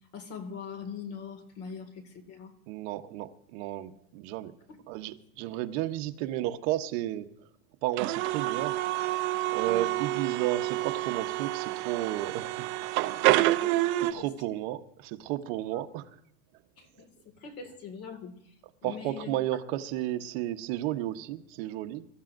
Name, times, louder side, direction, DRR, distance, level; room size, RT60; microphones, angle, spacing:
voice 1, 0.1-2.5 4.7-4.8 9.7-9.8 13.6-13.7 14.2-14.3 16.8-18.4 18.8-19.3, left 6 dB, 35° left, 7 dB, 2.2 m, -42 dB
voice 2, 2.7-4.5 4.9-7.3 7.8-8.8 9.5-12.7 13.0-13.4 14.1-16.2 18.8-22.1, right 14 dB, 55° right, 7 dB, 1.0 m, -33 dB
sound 1, 8.0-14.1, right 17 dB, 30° right, 0.4 m, -28 dB
26.0 x 13.5 x 2.6 m, 0.71 s
supercardioid pair, 150°, 39 cm